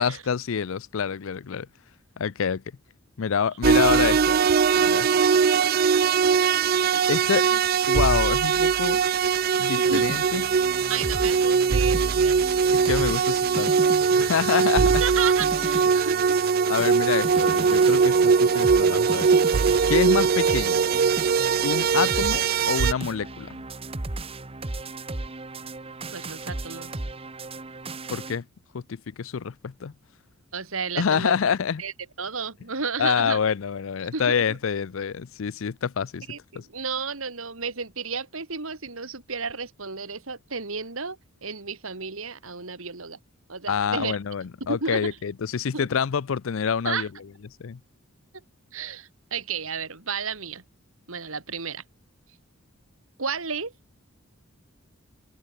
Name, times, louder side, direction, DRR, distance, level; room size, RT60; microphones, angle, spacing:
voice 1, 0.0-1.7 2.2-2.6 3.2-4.4 4.7-5.1 7.1-7.5 7.9-9.0 9.6-10.4 12.7-13.8 14.1-14.8 16.7-19.3 19.9-20.8 21.6-23.6 28.1-28.5 28.7-29.9 31.0-31.8 33.0-36.3 36.5-36.7 43.7-47.1 47.6-47.8, left 6 dB, 70° left, 0.5 m, -27 dB
sound 1, 3.6-22.9, right 6 dB, 45° right, 0.4 m, -21 dB
sound 2, 7.3-8.2 8.6-12.1 12.7-14.0, left 2 dB, 10° left, 6.4 m, -54 dB
sound 3, 9.8-28.4, right 2 dB, 25° right, 1.0 m, -36 dB
voice 2, 10.9-12.9 14.8-16.4 26.1-26.9 30.5-31.3 31.8-31.9 32.2-33.4 34.1-34.4 36.3-43.2 43.5-44.2 44.7-45.1 45.7-45.9 46.8-47.1 48.7-50.6 51.1-51.8 53.2-53.7, right 5 dB, 75° right, 2.5 m, -32 dB
head